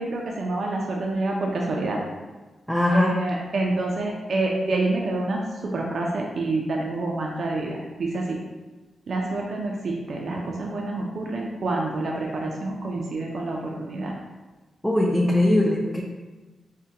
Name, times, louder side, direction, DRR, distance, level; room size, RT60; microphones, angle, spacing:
voice 1, 0.0-2.0 2.9-8.4 9.1-14.1, right 2 dB, 65° right, -1 dB, 0.4 m, -27 dB
voice 2, 2.7-3.1 14.8-16.0, left 1 dB, ahead, -2 dB, 0.4 m, -20 dB
3.5 x 2.1 x 2.7 m, 1.2 s
cardioid pair, 65°, 0 cm